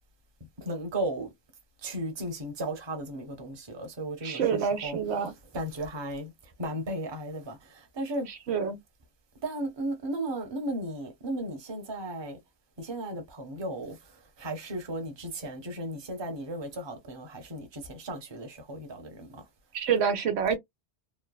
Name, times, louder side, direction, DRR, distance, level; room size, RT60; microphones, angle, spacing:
voice 1, 0.6-1.3 1.8-5.0 5.5-6.3 6.6-7.6 8.0-8.3 9.4-12.4 12.8-14.0 14.4-19.4, right 1 dB, 25° right, 0.7 m, -35 dB
voice 2, 4.2-5.3 8.3-8.8 19.7-20.6, right 7 dB, 75° right, 0.9 m, -27 dB
3.1 x 2.1 x 2.2 m
omnidirectional pair, 1.1 m